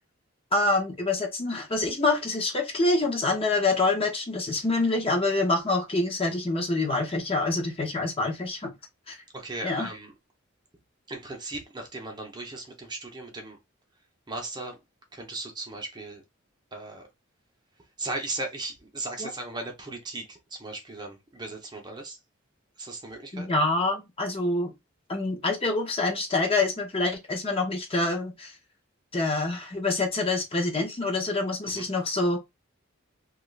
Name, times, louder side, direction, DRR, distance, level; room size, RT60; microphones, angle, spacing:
voice 1, 0.5-8.7 9.1-9.2 9.6-9.9 19.2-19.3 23.3-24.7 25.1-28.5 29.1-32.4, left 2 dB, 30° left, 0.8 m, -26 dB
voice 2, 9.3-10.1 11.1-13.6 14.3-14.8 15.1-16.2 16.7-17.1 18.0-22.2 22.8-23.5 31.7-31.9, right 2 dB, 20° right, 0.8 m, -37 dB
3.1 x 2.4 x 3.2 m
head